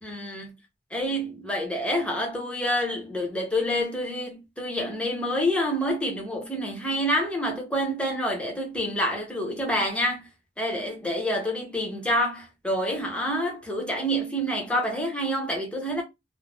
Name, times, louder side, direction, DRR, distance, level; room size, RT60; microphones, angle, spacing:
voice 1, 0.0-0.5 0.9-10.2 10.6-16.0, equal, 5° left, 0.8 m, -27 dB
2.5 x 2.1 x 3.2 m
head